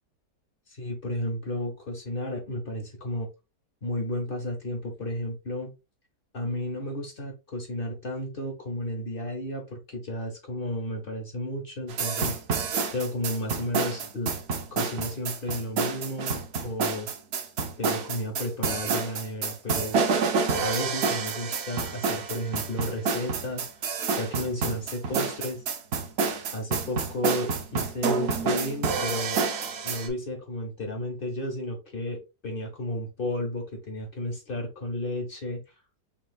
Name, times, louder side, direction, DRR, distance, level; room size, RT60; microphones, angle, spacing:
voice 1, 0.7-3.3 3.8-5.7 6.3-12.4 12.9-14.3 14.7-17.1 17.8-20.0 20.6-23.7 24.1-25.6 26.5-29.4 29.8-35.6, left 1 dB, 40° left, 2 dB, 0.8 m, -33 dB
sound 1, 11.9-30.1, right 5 dB, 90° right, 0.5 m, -28 dB
5.7 x 3.0 x 2.3 m, 0.26 s
omnidirectional pair, 1.9 m